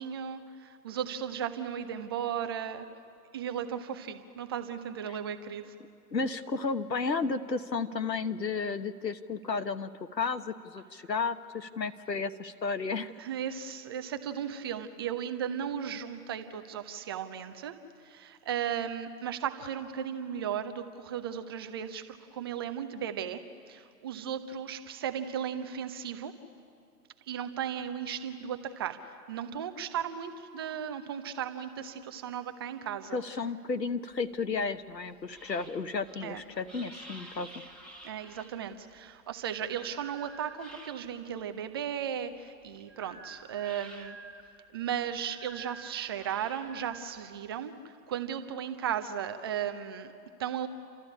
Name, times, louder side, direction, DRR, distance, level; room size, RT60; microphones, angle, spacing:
voice 1, 0.0-2.9 3.3-5.7 13.2-17.8 18.0-26.4 27.3-33.2 36.2-36.4 38.0-44.2 44.7-50.1 50.4-50.7, right 9 dB, 15° right, 9 dB, 0.5 m, -36 dB
voice 2, 6.1-13.1 33.1-37.5, left 4 dB, 85° left, 10 dB, 1.2 m, -33 dB
sound 1, 34.1-41.4 41.8-47.6, right 2 dB, ahead, 1.4 m, -50 dB
28.5 x 13.5 x 9.9 m, 2.5 s
figure-of-eight pair, 120°, 49 cm